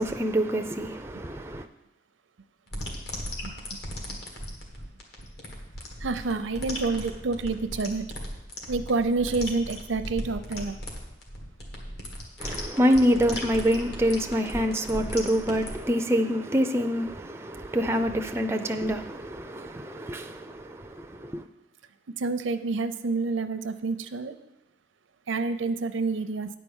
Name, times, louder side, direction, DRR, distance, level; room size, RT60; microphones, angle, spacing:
voice 1, 0.0-1.7 12.4-21.4, equal, 15° right, 0.4 m, -26 dB
sound 1, 2.7-15.8, left 1 dB, 55° left, 1.7 m, -37 dB
voice 2, 6.0-8.0 8.7-10.8 22.2-24.3 25.3-26.5, right 3 dB, 85° right, 0.6 m, -28 dB
9.5 x 4.6 x 7.1 m
head